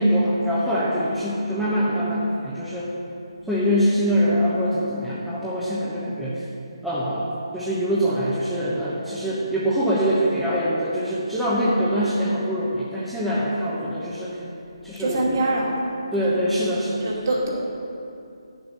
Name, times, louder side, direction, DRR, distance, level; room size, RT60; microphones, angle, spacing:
voice 1, 0.0-2.9 3.5-6.4 6.8-7.3 7.5-14.4 14.8-15.4 16.1-17.3, equal, ahead, -10 dB, 1.0 m, -23 dB
voice 2, 15.0-15.7 17.0-17.5, right 2 dB, 45° right, -4 dB, 2.5 m, -23 dB
10.5 x 7.0 x 5.7 m, 2.5 s
figure-of-eight pair, 150°, 3 cm